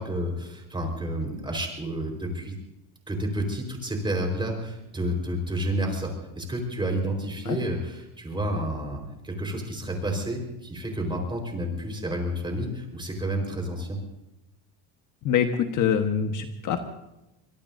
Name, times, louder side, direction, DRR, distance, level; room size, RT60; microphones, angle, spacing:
voice 1, 0.0-2.6 3.1-9.0 9.2-14.0, right 1 dB, 10° right, 3 dB, 4.4 m, -30 dB
voice 2, 15.2-16.8, left 8 dB, 45° left, 6 dB, 1.3 m, -24 dB
24.5 x 21.5 x 2.7 m, 0.94 s
cardioid pair, 135°, 42 cm